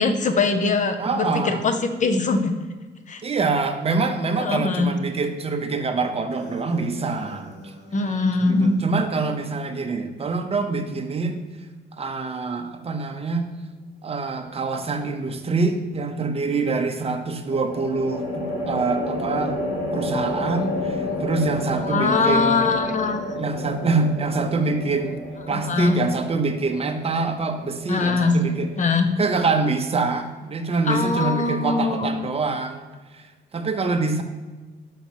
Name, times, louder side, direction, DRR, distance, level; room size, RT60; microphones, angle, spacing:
voice 1, 0.0-1.7 2.0-2.5 3.1-3.2 4.4-4.9 7.9-8.8 21.8-23.2 25.5-26.0 27.9-28.4 28.8-29.1 30.9-32.1, left 4 dB, 40° left, 7 dB, 0.7 m, -22 dB
voice 2, 1.0-1.6 3.2-7.7 8.4-11.4 12.0-13.5 14.0-22.7 23.3-25.2 25.5-28.7 29.2-32.9 33.1-33.2 33.5-34.2, right 4 dB, 30° right, 6 dB, 0.7 m, -25 dB
sound 1, 6.3-8.9, left 1 dB, 60° left, 1.5 m, -41 dB
sound 2, 14.3-14.9 17.5-28.8, left 2 dB, 85° left, 1.1 m, -31 dB
5.4 x 4.1 x 4.6 m, 1.3 s
cardioid pair, 90°, 20 cm